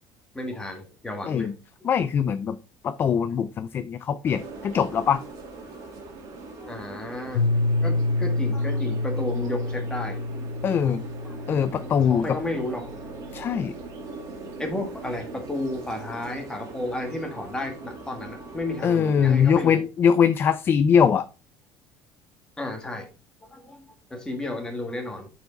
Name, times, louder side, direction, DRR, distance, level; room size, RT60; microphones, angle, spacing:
voice 1, 0.3-1.5 6.6-7.4 7.8-10.2 11.2-11.4 12.1-12.9 14.6-19.8 22.6-23.1 23.5-23.8 24.1-25.3, left 1 dB, 10° left, 3 dB, 1.7 m, -32 dB
voice 2, 1.8-2.6 2.8-5.2 10.6-11.0 11.5-12.4 13.3-13.7 18.8-21.3, left 7 dB, 25° left, 13 dB, 0.3 m, -22 dB
sound 1, 4.2-19.6, right 3 dB, 45° right, 2.1 m, -41 dB
Piano, 7.3-13.0, left 2 dB, 50° left, 0.9 m, -27 dB
9.3 x 4.8 x 3.9 m, 0.32 s
cardioid pair, 170°, 8 cm